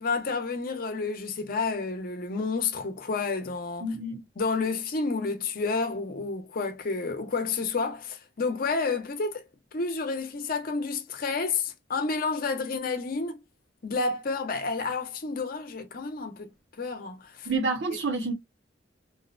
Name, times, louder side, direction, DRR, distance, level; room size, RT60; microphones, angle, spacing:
voice 1, 0.0-3.9 4.4-9.4 9.7-13.4 13.8-16.5 16.8-17.5, left 4 dB, 50° left, 0.6 m, -30 dB
voice 2, 3.8-4.2 17.5-18.3, right 3 dB, 75° right, 0.7 m, -28 dB
2.7 x 2.1 x 2.4 m
head